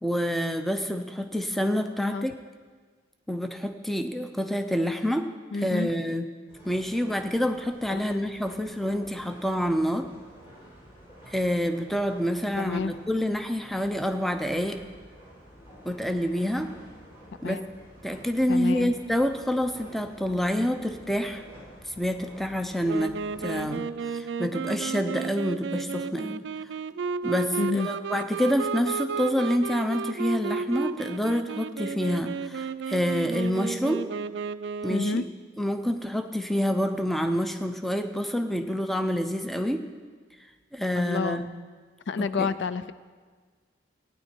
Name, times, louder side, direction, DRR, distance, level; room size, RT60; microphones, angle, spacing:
voice 1, 0.0-2.3 3.3-5.3 5.5-6.3 6.6-10.1 11.3-14.8 15.8-16.7 17.4-17.6 18.0-21.4 21.8-23.9 24.1-26.4 27.2-34.0 34.8-35.2 35.6-39.8 40.7-41.5 42.2-42.5, equal, ahead, 7 dB, 0.5 m, -27 dB
voice 2, 5.5-5.9 7.9-8.3 12.6-12.9 17.4-17.6 18.5-18.9 27.6-27.9 34.9-35.2 41.0-41.5 42.1-42.9, left 4 dB, 75° left, 14 dB, 0.4 m, -29 dB
sound 1, 6.5-23.8, equal, 30° left, 4.7 m, -50 dB
Wind instrument woodwind instrument, 22.8-35.3, right 5 dB, 75° right, 0.4 m, -33 dB
15.5 x 9.7 x 4.5 m, 1.5 s
head